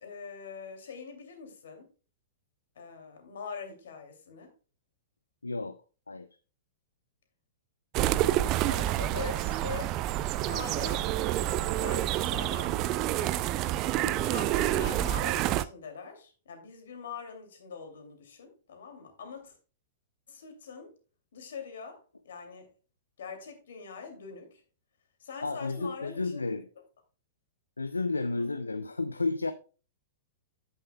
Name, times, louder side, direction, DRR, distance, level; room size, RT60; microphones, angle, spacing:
voice 1, 0.0-1.9 2.8-4.5 8.7-10.0 10.3-11.1 11.4-13.2 14.1-19.6 20.3-20.9 21.3-22.7 23.2-24.6 25.2-26.4, left 5 dB, 60° left, 2.5 m, -43 dB
voice 2, 5.4-5.8 6.1-6.3 14.0-14.3 25.4-26.7 27.8-29.5, left 3 dB, 80° left, 0.5 m, -32 dB
sound 1, 7.9-15.6, right 14 dB, 35° right, 0.4 m, -28 dB
9.7 x 8.9 x 2.2 m
figure-of-eight pair, 100°, 0 cm